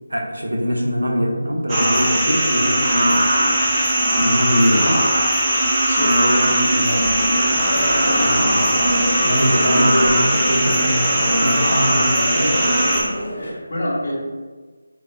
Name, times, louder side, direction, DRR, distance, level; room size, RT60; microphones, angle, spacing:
voice 1, 0.1-3.5 4.2-5.1 8.2-12.6, equal, 85° right, 1 dB, 0.6 m, -23 dB
sound 1, 1.7-13.0, right 1 dB, 15° right, 0.6 m, -19 dB
voice 2, 5.9-7.0 13.3-14.1, equal, 60° left, -4 dB, 1.0 m, -25 dB
sound 2, 7.0-13.5, equal, 40° left, 1.2 m, -27 dB
3.1 x 3.0 x 2.2 m, 1.4 s
figure-of-eight pair, 160°, 0 cm